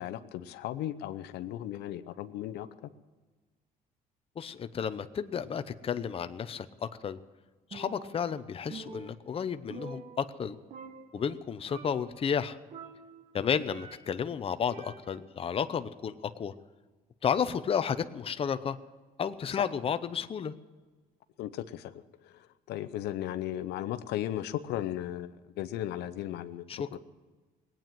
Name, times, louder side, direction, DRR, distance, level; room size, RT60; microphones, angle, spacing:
voice 1, 0.0-2.9 19.6-19.7 21.4-26.6 26.9-27.0, left 12 dB, 80° left, 12 dB, 0.8 m, -36 dB
voice 2, 4.4-7.2 7.7-10.6 11.1-12.6 13.3-16.5 17.2-18.8 19.2-20.5 26.7-27.0, left 7 dB, 35° left, 10 dB, 0.7 m, -32 dB
Percussion, 7.7-8.4 8.7-10.5 10.7-11.4 11.7-12.2 12.7-14.3 14.7-15.4, right 4 dB, 50° right, 1.4 m, -47 dB
19.5 x 9.1 x 7.7 m, 1.3 s
cardioid pair, 110°, 17 cm